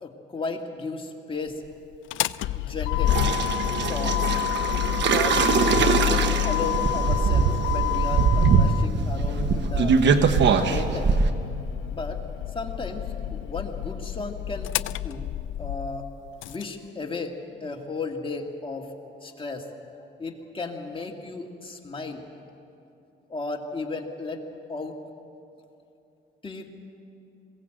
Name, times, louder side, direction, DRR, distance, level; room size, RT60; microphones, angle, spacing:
voice 1, 0.0-1.6 2.5-3.2 3.9-4.3 5.1-10.0 10.6-11.1 11.9-12.2 12.5-14.7 15.0-15.3 15.6-16.1 16.5-17.4 17.6-18.9 19.2-19.7 20.2-22.3 23.3-24.4 24.7-25.0 26.4-26.7, left 3 dB, 25° left, 2 dB, 2.2 m, -34 dB
Motor vehicle (road), 1.9-16.6, left 13 dB, 75° left, 0.4 m, -29 dB
sound 1, 3.1-11.3, right 5 dB, 65° right, 1.2 m, -22 dB
21.5 x 16.5 x 7.8 m, 2.8 s
cardioid pair, 90°, 20 cm